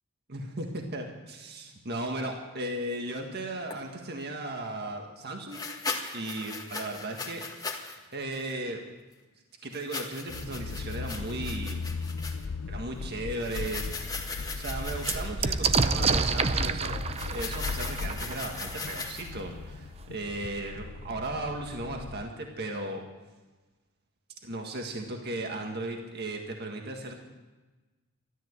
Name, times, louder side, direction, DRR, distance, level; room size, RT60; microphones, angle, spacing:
voice 1, 0.3-5.7 6.1-8.8 9.6-11.8 12.7-14.1 14.6-23.0 24.4-27.2, right 1 dB, 50° right, 2 dB, 1.8 m, -36 dB
sound 1, 3.7-3.8 5.5-8.0 8.3-8.5 9.7-12.4 13.3-15.4 17.1-19.4, left 4 dB, 15° left, 1.8 m, -38 dB
sound 2, 10.3-22.2, left 4 dB, 80° left, 0.6 m, -38 dB
sound 3, 13.0-13.1 13.6-13.7 13.9-19.5 20.4-20.5 20.8-21.4, right 5 dB, 30° right, 0.6 m, -30 dB
13.5 x 13.0 x 8.1 m, 1.2 s
head